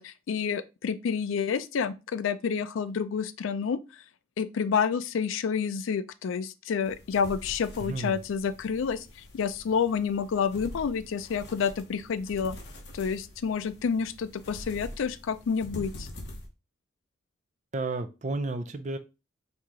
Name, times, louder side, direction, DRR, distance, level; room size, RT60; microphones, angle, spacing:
voice 1, 0.0-3.8 4.4-9.0 9.3-12.6 12.9-16.1, left 6 dB, 80° left, 0.4 m, -29 dB
sound 1, 6.8-16.5, left 1 dB, 60° left, 1.0 m, -45 dB
voice 2, 7.8-8.2 17.7-19.0, right 2 dB, 35° right, 0.4 m, -32 dB
4.6 x 2.8 x 3.7 m
head